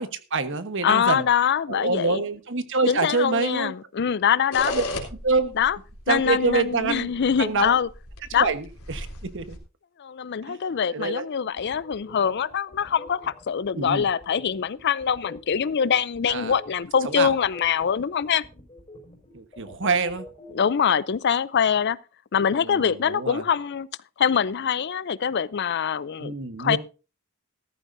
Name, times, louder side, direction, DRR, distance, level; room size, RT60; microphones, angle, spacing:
voice 1, 0.0-1.2 1.7-3.7 4.7-4.8 5.2-5.5 6.1-7.1 7.4-7.7 8.3-9.1 9.3-9.6 10.5-10.6 10.9-11.2 13.7-14.1 16.3-16.6 17.0-17.3 19.3-20.3 22.5-23.4 26.2-26.8, right 4 dB, 60° right, 1.2 m, -26 dB
voice 2, 0.8-2.2 2.9-4.7 5.5-5.8 6.1-7.9 8.3-8.5 10.0-18.4 20.5-22.0 22.3-23.9 24.2-26.3 26.6-26.8, left 7 dB, 50° left, 0.5 m, -24 dB
sound 1, 4.5-9.6, left 2 dB, 80° left, 3.4 m, -36 dB
sound 2, 11.5-20.5, left 2 dB, 25° left, 5.5 m, -46 dB
14.5 x 14.0 x 2.6 m
head